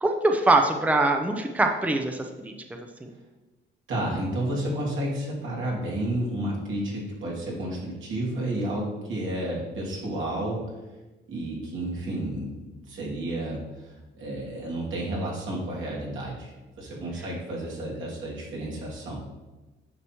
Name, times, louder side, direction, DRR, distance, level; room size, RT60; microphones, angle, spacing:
voice 1, 0.0-2.5 3.0-3.1, right 2 dB, 5° right, 4 dB, 0.6 m, -23 dB
voice 2, 3.9-10.6 11.3-19.2, right 1 dB, 80° right, -4 dB, 2.6 m, -31 dB
9.4 x 6.0 x 3.1 m, 1.2 s
cardioid pair, 90°, 20 cm